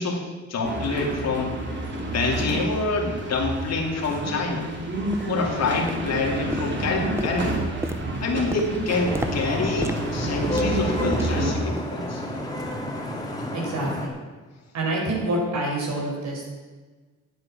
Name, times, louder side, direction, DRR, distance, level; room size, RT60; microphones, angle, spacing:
voice 1, 0.0-1.5 2.1-4.7 5.3-7.6 8.2-12.2, left 3 dB, 60° left, 1 dB, 2.8 m, -27 dB
sound 1, 0.6-11.5, right 1 dB, 40° right, 3.1 m, -29 dB
sound 2, 3.1-3.2 3.8-3.9 4.4-4.6 5.1-5.4 5.8-6.2 6.5-11.5 11.8-12.0 12.4-12.6 13.1-13.2, right 1 dB, 10° right, 0.7 m, -35 dB
Vehicle horn car horn honking / Traffic noise roadway noise, 8.9-14.1, left 1 dB, 15° left, 2.6 m, -31 dB
voice 2, 13.5-14.1 14.7-16.5, right 1 dB, 65° right, -1 dB, 4.7 m, -27 dB
9.8 x 8.9 x 7.4 m, 1.4 s
cardioid pair, 90°, 30 cm